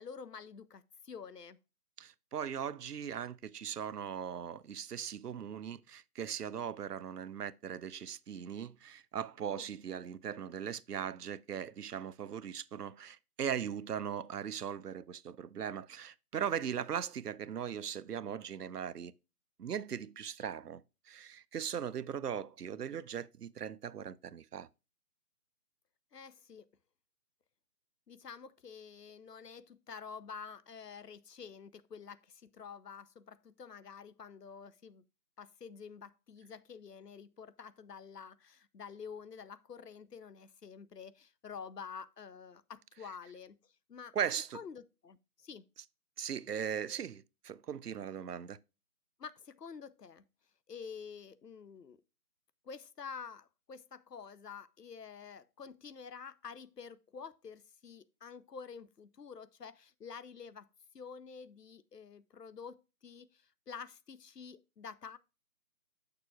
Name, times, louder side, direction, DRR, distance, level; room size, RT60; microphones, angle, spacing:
voice 1, 0.0-1.6 9.5-9.7 20.4-20.5 26.1-26.6 28.1-35.0 35.4-44.2 44.5-45.6 49.2-50.3 50.7-52.0 52.6-60.7 60.9-65.2, left 6 dB, 80° left, 0.7 m, -49 dB
voice 2, 2.0-19.1 19.6-20.8 21.1-24.7 44.1-44.6 46.2-48.6, right 8 dB, 75° right, 0.5 m, -39 dB
7.8 x 6.6 x 2.3 m
figure-of-eight pair, 160°, 47 cm